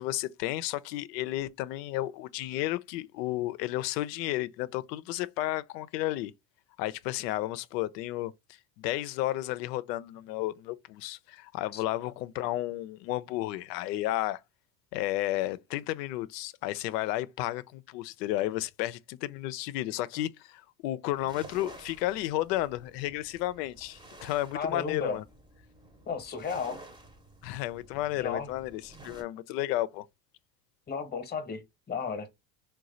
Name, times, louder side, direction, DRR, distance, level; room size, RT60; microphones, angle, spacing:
voice 1, 0.0-6.3 6.8-8.3 8.8-14.4 14.9-25.2 27.4-30.0, left 15 dB, 75° left, 0.5 m, -32 dB
sound 1, 21.1-29.2, right 2 dB, 10° right, 0.7 m, -51 dB
voice 2, 24.5-25.2 26.1-26.8 28.2-28.5 30.9-32.3, left 5 dB, 20° left, 0.9 m, -34 dB
3.1 x 2.3 x 3.8 m
hypercardioid pair, 90°, 50 cm